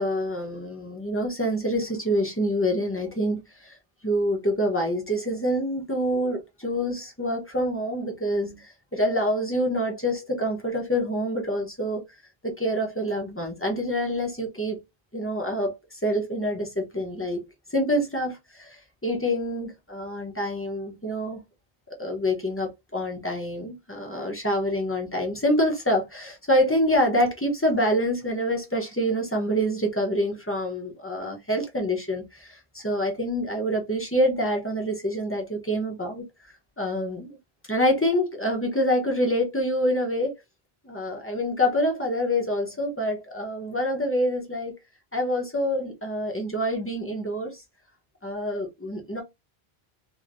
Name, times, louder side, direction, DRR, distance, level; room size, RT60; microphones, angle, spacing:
voice 1, 0.0-3.8 4.0-12.0 12.4-14.8 15.1-21.4 22.0-36.2 36.8-37.4 37.7-40.4 40.8-44.7 45.1-47.6 48.2-49.2, equal, 15° left, 0.9 m, -26 dB
3.1 x 2.8 x 2.6 m
omnidirectional pair, 1.0 m